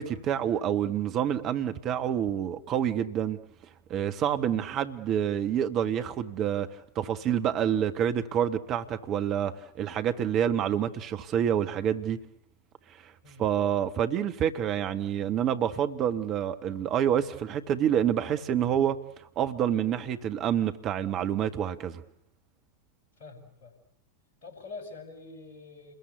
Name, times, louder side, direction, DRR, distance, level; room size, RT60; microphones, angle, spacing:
voice 1, 0.0-3.4 3.9-6.7 6.9-12.2 13.0-13.1 13.4-19.0 19.3-21.9, right 9 dB, 35° right, 8 dB, 1.5 m, -27 dB
voice 2, 23.2-23.7 24.4-25.9, left 3 dB, 55° left, 7 dB, 6.5 m, -45 dB
29.0 x 21.5 x 8.1 m, 0.76 s
figure-of-eight pair, 90°, 0 cm